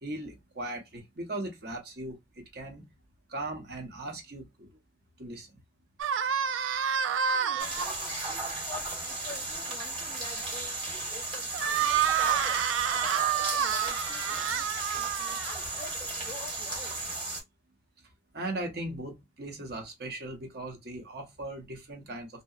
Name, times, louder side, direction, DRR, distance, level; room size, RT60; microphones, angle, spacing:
voice 1, 0.0-2.2 2.5-2.9 3.3-4.7 5.2-5.5 18.3-22.3, right 2 dB, 55° right, 0.8 m, -38 dB
sound 1, 6.0-7.9 11.5-15.9, right 8 dB, 85° right, 0.3 m, -28 dB
voice 2, 7.3-12.6 13.0-14.7 15.0-17.0, left 4 dB, 25° left, 0.4 m, -46 dB
sound 2, 7.6-17.4, right 2 dB, 25° right, 1.1 m, -35 dB
2.7 x 2.1 x 2.3 m
head